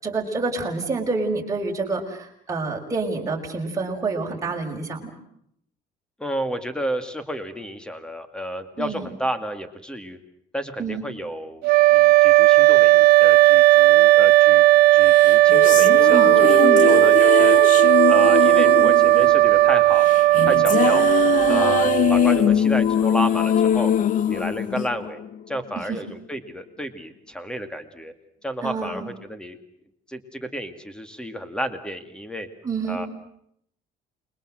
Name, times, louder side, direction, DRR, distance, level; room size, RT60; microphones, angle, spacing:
voice 1, 0.0-5.1 8.8-9.1 10.8-11.0 16.1-16.9 21.5-21.7 28.6-29.1 32.6-33.0, right 4 dB, 20° right, 0 dB, 5.6 m, -27 dB
voice 2, 6.2-10.2 10.5-11.6 11.9-14.6 14.9-17.6 18.1-20.1 20.4-21.1 21.5-23.9 24.3-25.2 25.5-28.1 28.4-29.6 30.1-32.5 32.9-33.1, equal, 5° left, 10 dB, 2.3 m, -31 dB
sound 1, 11.6-22.6, right 17 dB, 90° right, 1.2 m, -15 dB
sound 2, 15.1-25.6, left 10 dB, 55° left, 1.0 m, -22 dB
28.5 x 23.0 x 7.7 m, 0.71 s
cardioid pair, 140°, 16 cm